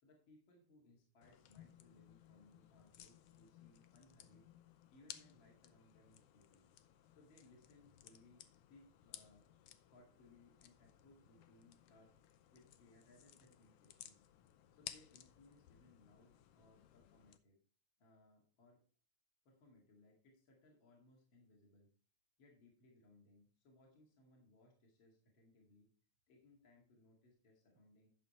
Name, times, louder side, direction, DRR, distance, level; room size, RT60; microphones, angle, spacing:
voice 1, 0.0-4.4 4.9-6.6 7.1-9.5 9.9-12.1 12.5-14.2 14.7-17.6 18.0-18.8 19.4-21.9 22.4-25.9 26.3-28.1, left 2 dB, 45° left, -1 dB, 2.7 m, -67 dB
sound 1, 1.2-17.4, left 11 dB, 75° left, 1.4 m, -59 dB
10.5 x 6.7 x 4.3 m, 0.42 s
omnidirectional pair, 3.4 m